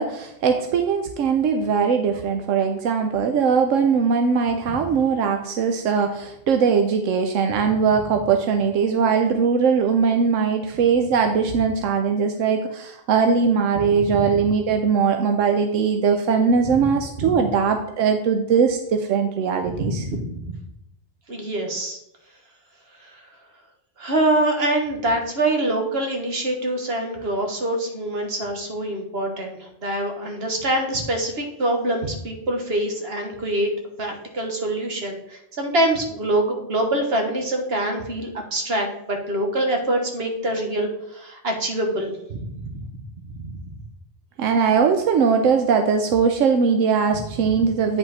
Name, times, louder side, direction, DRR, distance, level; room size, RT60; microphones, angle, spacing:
voice 1, 0.0-20.0 44.4-48.0, right 6 dB, 85° right, 5 dB, 1.0 m, -20 dB
voice 2, 19.7-20.6 21.3-22.0 23.0-23.2 24.0-33.7 34.0-42.7 43.4-43.7, right 1 dB, 55° right, 3 dB, 1.7 m, -25 dB
9.1 x 5.4 x 4.1 m, 0.80 s
omnidirectional pair, 1.3 m